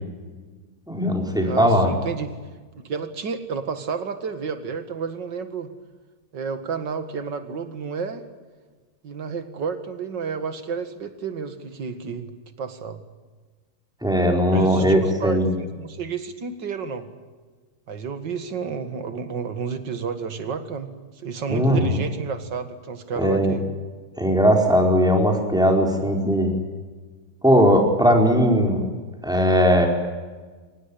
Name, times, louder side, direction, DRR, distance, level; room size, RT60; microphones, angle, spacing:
voice 1, 0.9-1.9 14.0-15.5 21.5-22.0 23.2-23.5 24.2-26.5 27.4-28.8 29.2-29.9, equal, ahead, 2 dB, 4.5 m, -19 dB
voice 2, 1.4-2.3 2.8-5.7 6.3-8.2 9.0-12.3 12.6-13.0 14.5-17.1 17.9-20.9 21.2-23.6, right 5 dB, 60° right, 9 dB, 2.5 m, -31 dB
23.5 x 19.5 x 10.0 m, 1.4 s
omnidirectional pair, 2.3 m